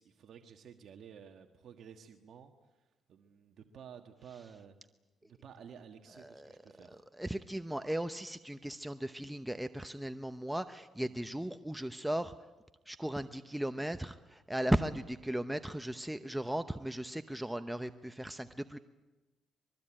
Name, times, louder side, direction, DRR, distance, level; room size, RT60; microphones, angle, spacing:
voice 1, 0.0-4.8 5.2-7.1, right 7 dB, 65° right, 6 dB, 1.5 m, -53 dB
voice 2, 6.2-6.5 6.9-12.3 12.9-18.8, right 1 dB, 5° right, 10 dB, 0.8 m, -36 dB
24.5 x 22.0 x 8.8 m, 1.1 s
cardioid pair, 90°, 0 cm